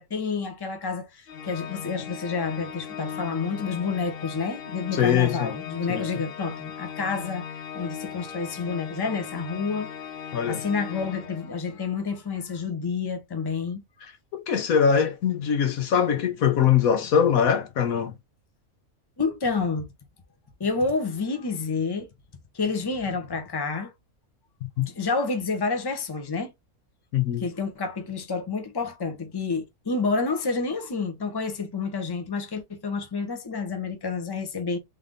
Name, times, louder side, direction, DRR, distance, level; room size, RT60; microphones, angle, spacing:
voice 1, 0.0-7.4 7.7-13.8 19.2-19.9 20.6-22.1 22.5-23.9 24.8-26.5 27.4-34.8, left 4 dB, 20° left, 0.9 m, -29 dB
Organ, 1.3-11.9, left 8 dB, 50° left, 0.8 m, -38 dB
voice 2, 4.9-5.5 5.9-6.1 10.3-10.6 14.3-18.1 24.8-24.9 27.1-27.4, left 8 dB, 70° left, 1.3 m, -22 dB
3.6 x 3.4 x 3.7 m
omnidirectional pair, 1.6 m